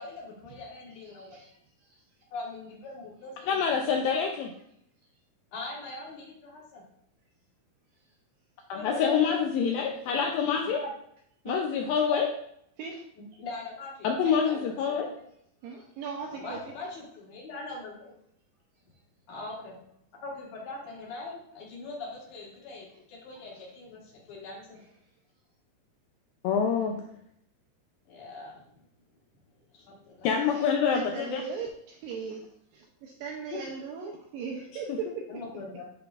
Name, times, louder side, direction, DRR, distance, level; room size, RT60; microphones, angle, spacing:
voice 1, 0.0-1.4 2.3-3.6 3.8-4.2 5.5-6.8 8.7-9.7 10.6-10.9 13.2-15.1 16.2-18.1 19.3-19.8 20.2-24.8 28.1-28.8 29.5-30.3 33.5-33.7 35.3-35.8, left 3 dB, 55° left, -3 dB, 2.2 m, -41 dB
voice 2, 1.2-1.6 1.9-2.0 9.1-9.2 11.5-11.6 12.8-13.0 15.6-16.6 30.5-32.5 32.7-35.1, right 5 dB, 80° right, 1 dB, 2.0 m, -38 dB
voice 3, 3.5-4.5 8.7-10.8 11.5-12.3 14.0-15.1 26.4-27.0 30.2-31.4, left 6 dB, 90° left, 2 dB, 2.0 m, -26 dB
11.0 x 3.9 x 2.4 m, 0.73 s
omnidirectional pair, 4.7 m